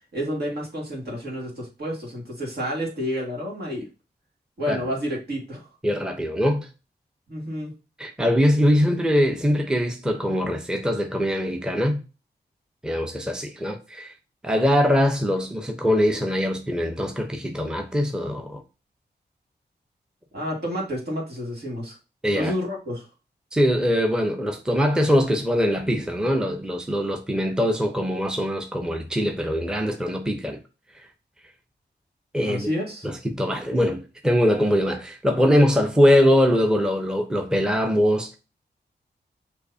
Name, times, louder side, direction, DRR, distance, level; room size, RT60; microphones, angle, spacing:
voice 1, 0.1-3.9 4.6-5.7 7.3-7.7 20.3-22.0 22.3-23.1 32.5-33.1, equal, 70° right, 1.9 m, -30 dB
voice 2, 5.8-6.7 8.0-12.0 12.8-14.1 14.4-18.6 22.2-22.5 23.5-30.6 32.3-32.7 33.0-38.4, equal, 5° right, 0.7 m, -22 dB
6.4 x 2.8 x 2.7 m
cardioid pair, 75°, 18 cm